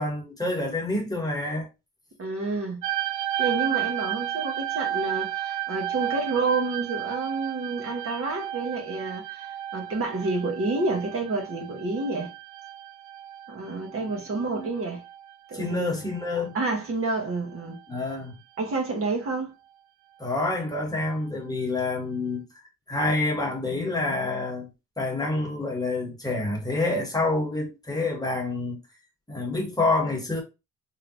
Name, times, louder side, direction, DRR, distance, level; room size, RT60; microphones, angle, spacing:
voice 1, 0.0-1.7 13.9-14.0 14.4-14.7 15.5-16.6 17.9-18.3 20.2-22.4 22.9-24.7 25.0-28.8 29.3-30.4, left 2 dB, 10° left, 1.3 m, -27 dB
voice 2, 2.2-2.8 3.4-12.3 13.5-15.0 15.5-15.9 16.5-17.8 18.6-19.5, right 3 dB, 45° right, 1.2 m, -29 dB
sound 1, 2.8-16.8 17.6-17.8, right 12 dB, 70° right, 0.5 m, -33 dB
3.3 x 2.8 x 2.6 m
cardioid pair, 90°, 30 cm